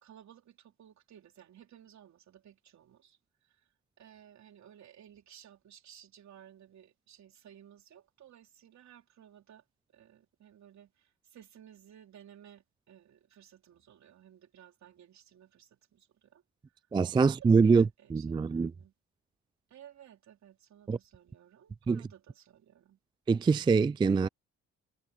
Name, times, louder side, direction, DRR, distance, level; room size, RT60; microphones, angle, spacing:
voice 1, 0.0-3.7 4.0-9.6 9.9-16.4 17.2-18.9 19.7-23.0, right 10 dB, 65° right, 3.7 m, -56 dB
voice 2, 16.9-17.8 18.1-18.7 20.9-21.0 21.9-22.0 23.3-24.3, right 5 dB, 15° right, 0.3 m, -24 dB
cardioid pair, 90°, 30 cm